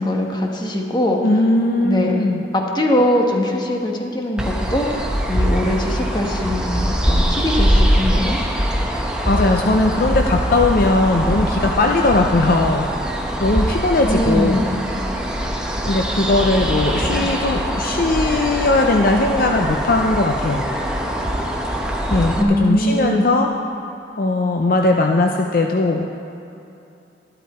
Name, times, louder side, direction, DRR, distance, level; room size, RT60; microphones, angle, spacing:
voice 1, 0.0-1.2 1.8-2.2 2.5-8.4 14.1-14.7 17.0-17.3 22.4-23.3, left 1 dB, 25° left, 1 dB, 1.2 m, -21 dB
voice 2, 1.2-2.4 9.2-12.9 13.4-14.7 15.9-20.6 22.1-23.5 24.2-26.2, left 2 dB, 50° left, 2 dB, 0.5 m, -18 dB
sound 1, 4.4-22.4, equal, 5° right, 0.9 m, -22 dB
13.0 x 12.0 x 4.3 m, 2.8 s
head